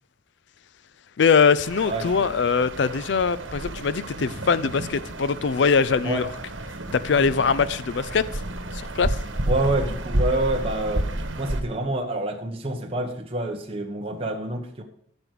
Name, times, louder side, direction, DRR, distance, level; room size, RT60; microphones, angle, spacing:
voice 1, 1.2-6.3 6.9-8.4 8.7-9.2, left 5 dB, 65° left, 16 dB, 0.4 m, -22 dB
sound 1, 1.6-11.6, right 1 dB, 90° right, 1.3 m, -31 dB
voice 2, 1.8-2.3 6.0-6.2 9.5-11.1 11.3-14.8, right 1 dB, 30° right, 1 dB, 1.1 m, -27 dB
15.0 x 6.2 x 4.9 m, 0.67 s
head